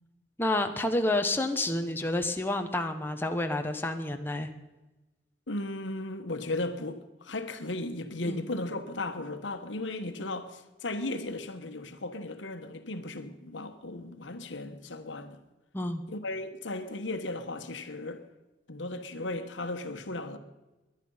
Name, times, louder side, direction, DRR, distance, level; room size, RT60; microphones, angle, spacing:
voice 1, 0.4-4.5 8.3-8.4 15.7-16.0, left 1 dB, 10° left, 1.0 m, -29 dB
voice 2, 5.5-15.4 16.1-18.2 18.7-20.4, left 2 dB, 85° left, 1.3 m, -36 dB
21.0 x 10.5 x 5.6 m
head